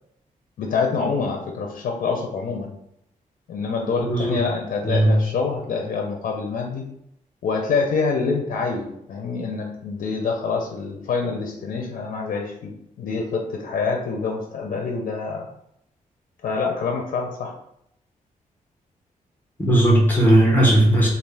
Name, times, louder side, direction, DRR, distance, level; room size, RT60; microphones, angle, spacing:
voice 1, 0.6-2.7 3.5-6.8 7.4-12.7 13.0-15.5 16.4-17.6, left 4 dB, 75° left, 1 dB, 0.5 m, -26 dB
voice 2, 4.0-4.4 4.8-5.2 19.6-21.1, right 1 dB, 15° left, -2 dB, 1.1 m, -17 dB
3.4 x 2.4 x 3.3 m, 0.76 s
wide cardioid pair, 130°, 14 cm